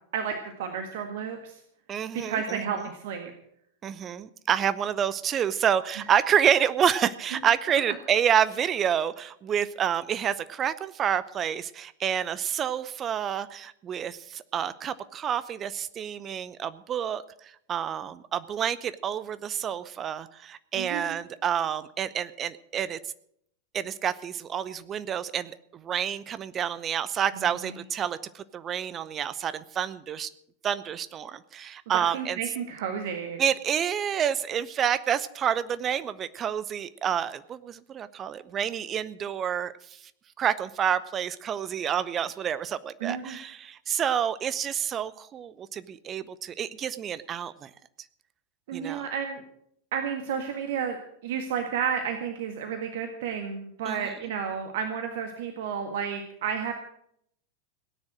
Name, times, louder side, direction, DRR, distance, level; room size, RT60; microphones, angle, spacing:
voice 1, 0.1-1.6 2.1-3.3 7.3-7.4 20.7-21.2 27.3-27.7 31.9-33.4 43.0-43.4 48.7-49.4 49.9-51.0 51.2-56.7, right 7 dB, 55° right, 5 dB, 1.6 m, -32 dB
voice 2, 1.9-2.6 3.8-17.2 17.7-23.0 23.7-25.6 25.8-30.3 30.6-32.4 33.4-39.7 40.4-47.7 48.7-49.0 53.9-54.1, right 9 dB, 25° right, 15 dB, 0.7 m, -28 dB
18.0 x 9.8 x 6.2 m, 0.70 s
figure-of-eight pair, 90°, 0 cm